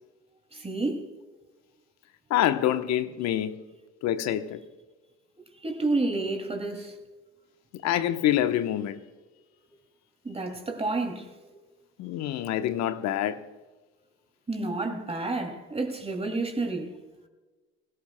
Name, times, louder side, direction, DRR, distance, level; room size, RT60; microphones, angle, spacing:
voice 1, 0.5-1.1 5.6-6.9 10.2-11.4 14.5-16.9, right 2 dB, 20° right, 2.6 m, -30 dB
voice 2, 2.3-3.6 4.0-4.6 7.8-9.0 12.0-13.4, left 11 dB, 60° left, 1.0 m, -26 dB
23.5 x 16.5 x 2.2 m
hypercardioid pair, 65°, 31 cm